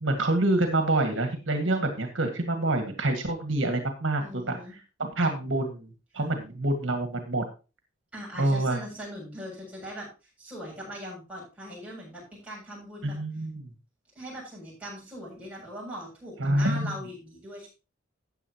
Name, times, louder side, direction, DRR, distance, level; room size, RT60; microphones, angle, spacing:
voice 1, 0.0-4.6 5.0-5.9 6.1-7.4 8.4-8.8 13.0-13.7 16.4-16.9, right 2 dB, 75° right, 5 dB, 1.9 m, -26 dB
voice 2, 4.2-4.7 8.1-10.1 10.4-13.1 14.2-17.7, equal, 5° right, -5 dB, 7.4 m, -40 dB
13.5 x 9.0 x 3.0 m, 0.31 s
head